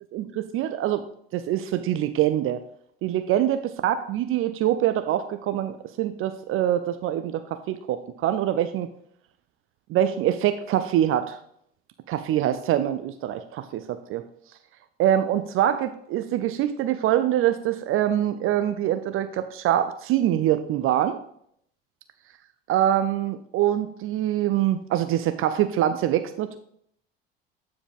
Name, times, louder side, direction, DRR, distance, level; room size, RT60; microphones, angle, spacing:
voice 1, 0.1-1.0 1.3-2.6 3.0-8.9 9.9-11.4 12.1-14.2 15.0-21.2 22.7-26.6, right 11 dB, 45° right, 10 dB, 0.6 m, -24 dB
9.3 x 4.9 x 3.6 m, 0.67 s
figure-of-eight pair, 65°, 30 cm